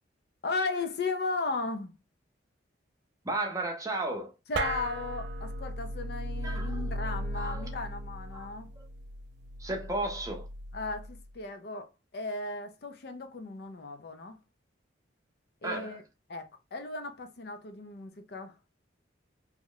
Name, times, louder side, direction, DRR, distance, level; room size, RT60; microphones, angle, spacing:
voice 1, 0.4-1.9 4.5-8.7 10.7-11.9 12.1-14.4 15.6-16.0 16.3-18.6, left 3 dB, 55° left, 0.5 m, -36 dB
voice 2, 3.2-4.3 6.4-7.7 8.3-8.5 8.8-8.9 9.6-10.5 15.6-16.0, right 2 dB, 15° right, 0.6 m, -34 dB
sound 1, 4.5-11.3, right 1 dB, 60° right, 0.4 m, -37 dB
3.0 x 2.1 x 3.7 m
head